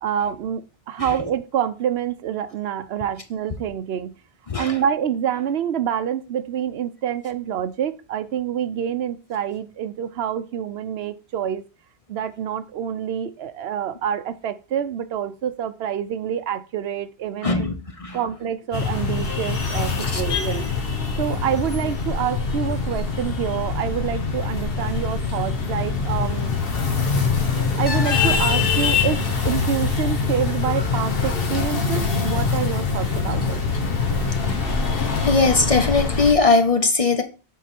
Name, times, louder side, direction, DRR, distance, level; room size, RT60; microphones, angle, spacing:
voice 1, 0.0-4.1 4.6-11.6 12.1-17.7 18.1-20.8 21.2-26.5 27.4-33.6, right 9 dB, 80° right, 0.9 m, -27 dB
voice 2, 4.5-4.8 17.4-18.2 20.1-20.2 34.5-34.8 35.2-37.2, left 3 dB, 40° left, 0.7 m, -20 dB
sound 1, 18.7-36.3, left 5 dB, 65° left, 1.3 m, -23 dB
8.2 x 3.7 x 4.3 m
omnidirectional pair, 1.1 m